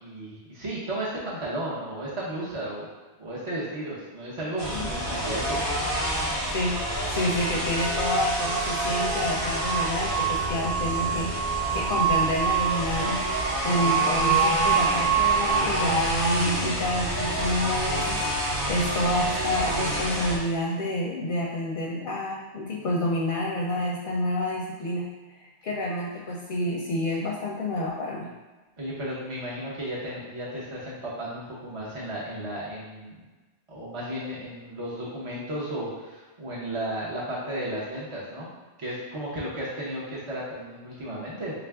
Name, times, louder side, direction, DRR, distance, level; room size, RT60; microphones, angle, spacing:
voice 1, 0.0-2.9 3.2-5.6 18.7-19.0 28.8-33.2 33.7-38.5 38.8-41.5, right 1 dB, 35° right, -7 dB, 0.7 m, -34 dB
sound 1, 4.6-20.4, equal, 55° right, 1.1 m, -28 dB
voice 2, 6.2-6.8 7.1-25.1 25.3-28.3, left 1 dB, 60° left, -3 dB, 0.6 m, -29 dB
sound 2, 8.4-15.5, right 10 dB, 10° left, 0.6 m, -27 dB
3.6 x 2.5 x 3.4 m, 1.2 s
omnidirectional pair, 1.1 m